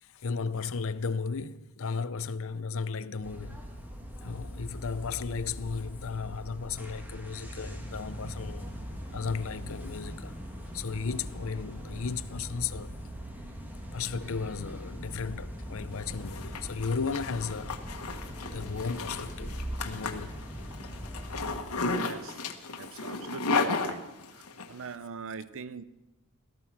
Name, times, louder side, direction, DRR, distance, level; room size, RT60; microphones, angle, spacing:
voice 1, 0.0-3.6 4.2-8.7 9.1-10.4 10.7-13.0 13.9-17.8 18.5-20.4, left 5 dB, 65° left, 0.7 m, -35 dB
sound 1, 3.2-21.6, equal, 10° right, 1.8 m, -41 dB
sound 2, 7.2-12.7, equal, 40° right, 6.9 m, -52 dB
Zipper (clothing), 16.0-24.7, left 4 dB, 90° left, 1.4 m, -34 dB
voice 2, 22.0-22.4 22.8-24.0 24.7-25.8, right 5 dB, 65° right, 0.7 m, -41 dB
17.5 x 13.5 x 5.9 m
head